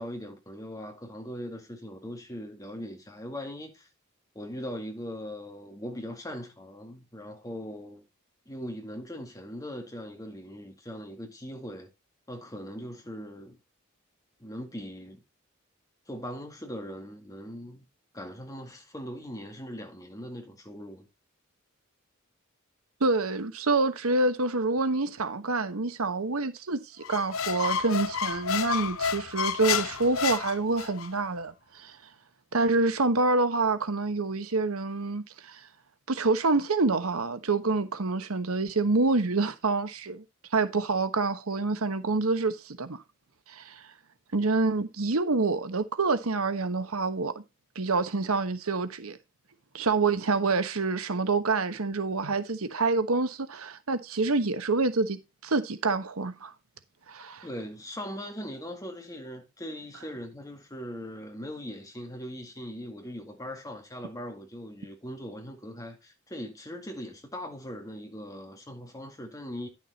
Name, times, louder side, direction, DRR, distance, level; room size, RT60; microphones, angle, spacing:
voice 1, 0.0-3.9 4.3-8.0 8.5-11.9 12.3-13.6 14.4-15.2 16.1-17.9 18.1-21.1 57.4-69.7, equal, 15° left, 2.0 m, -40 dB
voice 2, 23.0-31.9 32.5-35.6 36.1-40.2 40.5-43.0 43.5-43.8 44.3-47.4 47.7-49.2 49.7-56.5 57.1-57.5, right 3 dB, 90° right, 1.1 m, -27 dB
Squeak, 27.0-31.1, left 6 dB, 75° left, 0.7 m, -30 dB
10.5 x 6.4 x 4.0 m
head